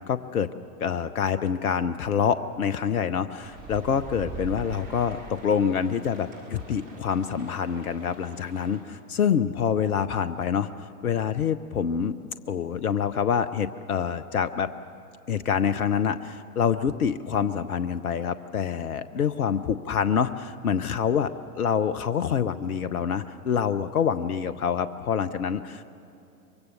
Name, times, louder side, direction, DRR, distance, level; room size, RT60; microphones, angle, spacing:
voice 1, 0.1-0.5 0.8-12.2 12.5-14.7 15.3-25.8, left 7 dB, 70° left, 13 dB, 0.8 m, -26 dB
sound 1, 3.4-8.8, right 1 dB, 55° right, 5.7 m, -49 dB
sound 2, 3.5-6.1, right 2 dB, 20° right, 3.6 m, -40 dB
24.0 x 23.0 x 6.8 m, 2.7 s
figure-of-eight pair, 95°, 45 cm